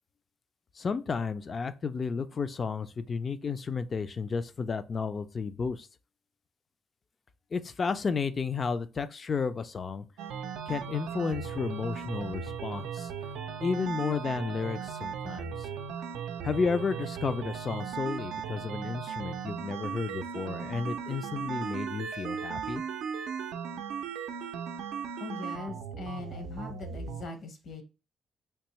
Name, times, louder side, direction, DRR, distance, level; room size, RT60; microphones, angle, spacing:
voice 1, 0.8-5.9 7.5-10.1 10.7-13.1 13.6-15.5 16.4-22.8, left 5 dB, 40° left, 0.3 m, -32 dB
sound 1, 10.2-27.2, right 7 dB, 90° right, 0.4 m, -37 dB
voice 2, 25.2-27.8, left 3 dB, 60° left, 0.9 m, -41 dB
3.4 x 2.7 x 3.0 m
cardioid pair, 90°, 0 cm